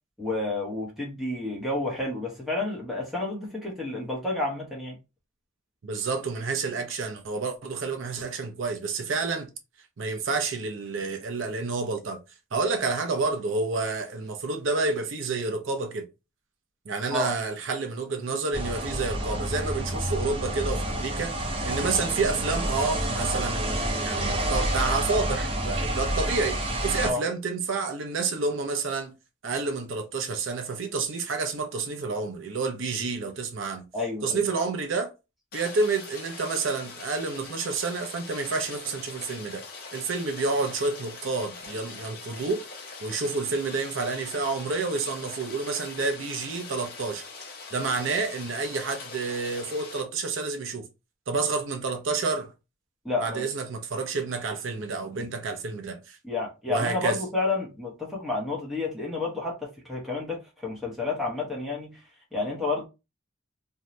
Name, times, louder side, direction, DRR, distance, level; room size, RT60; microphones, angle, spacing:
voice 1, 0.2-5.0 17.1-17.3 27.0-27.2 33.9-34.4 53.0-53.5 55.1-55.3 56.2-62.0 62.3-62.8, left 2 dB, ahead, 0.9 m, -30 dB
voice 2, 5.8-9.5 10.0-12.2 12.5-16.1 16.9-29.1 29.4-33.8 34.2-35.1 35.5-39.6 39.9-42.6 43.0-47.2 47.7-50.9 51.3-52.5 53.2-56.2 56.7-57.2, right 4 dB, 75° right, 0.6 m, -29 dB
sound 1, 18.5-27.1, right 1 dB, 25° right, 0.5 m, -29 dB
Rain, 35.5-50.0, left 4 dB, 45° left, 0.7 m, -42 dB
2.6 x 2.3 x 3.0 m
head